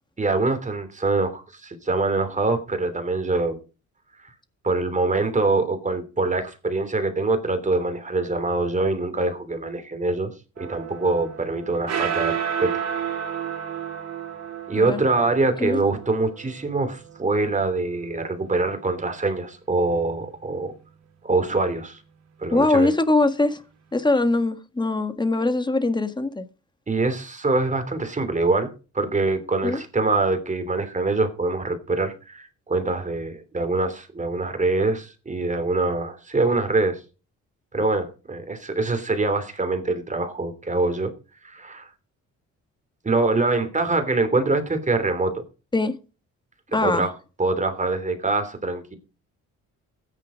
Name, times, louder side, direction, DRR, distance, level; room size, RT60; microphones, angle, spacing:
voice 1, 0.2-3.6 4.6-10.3 10.7-12.8 14.7-20.7 21.2-22.0 22.4-22.9 26.9-37.0 37.7-41.1 41.4-41.9 43.0-45.4 46.8-47.1 47.4-49.0, right 3 dB, 25° right, 3.2 m, -24 dB
sound 1, 10.6-19.1, right 8 dB, 60° right, 3.3 m, -32 dB
voice 2, 22.5-23.6 23.9-26.4 29.6-29.8 45.7-46.0 46.7-47.0, left 2 dB, 15° left, 1.7 m, -22 dB
13.5 x 10.0 x 5.1 m
cardioid pair, 90°, 30 cm